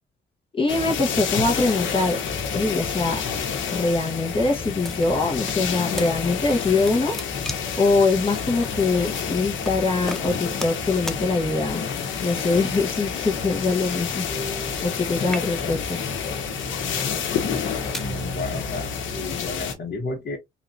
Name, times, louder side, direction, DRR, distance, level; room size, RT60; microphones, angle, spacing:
voice 1, 0.5-2.2 2.5-3.2 3.7-7.1 7.8-11.8 12.2-14.2 14.8-16.0, left 3 dB, 25° left, 1.4 m, -23 dB
sound 1, 0.7-19.7, left 6 dB, 80° left, 1.2 m, -29 dB
sound 2, 4.8-5.6 6.0-6.1 6.5-7.8 8.6-8.8 9.6-9.8 10.1-10.8 11.1-11.2 12.0-12.4 13.4-15.0 15.2-15.8 16.5-16.8 17.5-18.1, equal, ahead, 0.6 m, -36 dB
sound 3, 14.3-19.6, equal, 45° right, 1.8 m, -38 dB
voice 2, 18.0-20.4, left 3 dB, 50° left, 1.6 m, -32 dB
3.8 x 3.0 x 2.6 m
cardioid pair, 90°, 20 cm